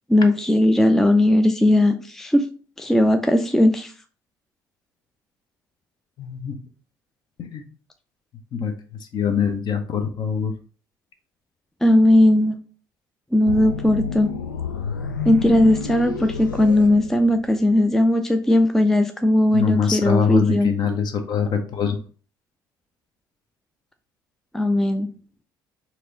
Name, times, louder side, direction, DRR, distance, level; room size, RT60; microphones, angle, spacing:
voice 1, 0.1-2.5 2.8-3.9 11.8-12.6 13.3-14.3 15.3-20.7 24.5-25.1, left 1 dB, 5° left, 7 dB, 0.4 m, -18 dB
voice 2, 6.2-6.6 7.4-7.6 8.5-8.7 9.1-10.5 19.5-22.0, left 6 dB, 45° left, 6 dB, 0.8 m, -23 dB
sound 1, 13.5-17.7, left 6 dB, 80° left, 0.4 m, -30 dB
4.6 x 2.9 x 3.9 m, 0.40 s
figure-of-eight pair, 55°, 10 cm